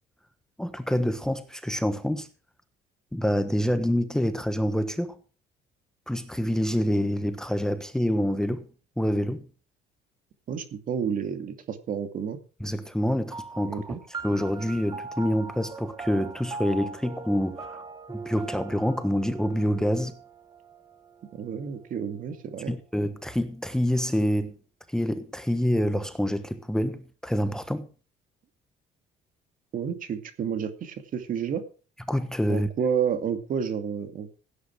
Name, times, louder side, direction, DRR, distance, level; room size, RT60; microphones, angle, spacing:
voice 1, 0.6-2.3 3.1-5.2 6.1-8.7 9.0-9.5 12.6-14.0 14.2-17.8 18.1-20.2 22.7-24.6 24.9-27.9 32.1-32.7, equal, 5° left, 1.2 m, -27 dB
voice 2, 10.5-12.4 13.6-14.0 21.3-22.7 29.7-31.6 32.5-34.4, right 7 dB, 55° right, 2.4 m, -30 dB
sound 1, 13.3-22.1, right 4 dB, 25° right, 1.4 m, -41 dB
17.0 x 9.7 x 4.7 m
cardioid pair, 110°, 17 cm